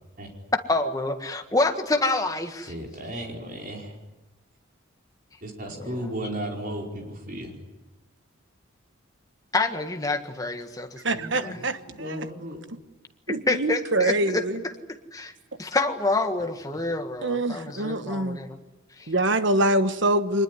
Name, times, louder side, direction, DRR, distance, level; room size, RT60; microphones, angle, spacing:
voice 1, 0.7-2.7 5.8-6.0 9.5-11.6 13.5-14.4 15.1-15.3 15.6-18.5 19.0-19.1, left 2 dB, 15° left, 6 dB, 1.6 m, -27 dB
voice 2, 2.7-3.9 5.4-7.6 11.1-11.5 11.9-12.6, equal, 40° right, 1 dB, 4.8 m, -35 dB
voice 3, 11.0-12.3 13.3-14.6 17.2-18.4 19.1-20.4, right 1 dB, 60° right, 11 dB, 1.3 m, -25 dB
24.5 x 20.5 x 9.9 m, 1.1 s
head